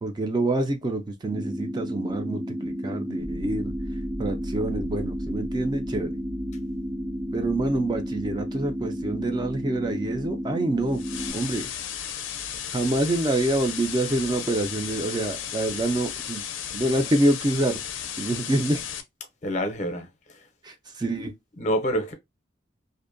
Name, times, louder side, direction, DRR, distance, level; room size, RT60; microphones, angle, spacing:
voice 1, 0.0-3.7 4.2-6.2 7.3-11.0 11.3-11.7 12.7-16.4 16.7-17.8 18.2-18.8 20.6-21.3, right 2 dB, 25° right, 0.3 m, -26 dB
sound 1, 1.3-11.3, equal, 85° right, 1.2 m, -32 dB
sound 2, 3.2-17.0 17.3-18.3, equal, 65° right, 0.7 m, -43 dB
sound 3, 10.9-19.0, left 9 dB, 85° left, 0.4 m, -34 dB
voice 2, 19.4-20.1 21.6-22.1, equal, 40° left, 0.5 m, -26 dB
2.5 x 2.1 x 2.4 m
head